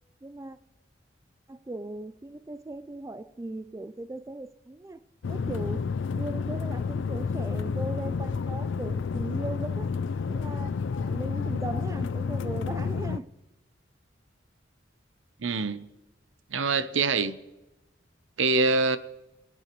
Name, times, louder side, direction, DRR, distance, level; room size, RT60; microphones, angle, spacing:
voice 1, 0.2-0.6 1.5-5.0 5.3-10.0 10.3-13.3, right 2 dB, 15° right, 0.3 m, -38 dB
sound 1, 5.2-13.2, left 5 dB, 80° left, 0.4 m, -30 dB
voice 2, 15.4-15.9 16.5-17.3 18.4-19.0, right 4 dB, 90° right, 0.7 m, -24 dB
23.0 x 9.6 x 3.1 m
head